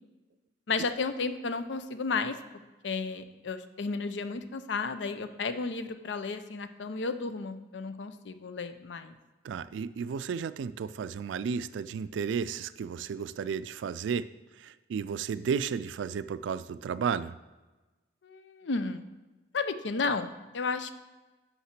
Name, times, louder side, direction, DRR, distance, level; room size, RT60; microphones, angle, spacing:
voice 1, 0.7-2.4 2.8-9.2 18.2-19.0 19.5-20.9, left 4 dB, 80° left, 10 dB, 0.6 m, -33 dB
voice 2, 9.4-14.3 14.6-17.3, right 6 dB, 90° right, 15 dB, 0.3 m, -33 dB
5.8 x 5.6 x 5.9 m, 1.2 s
head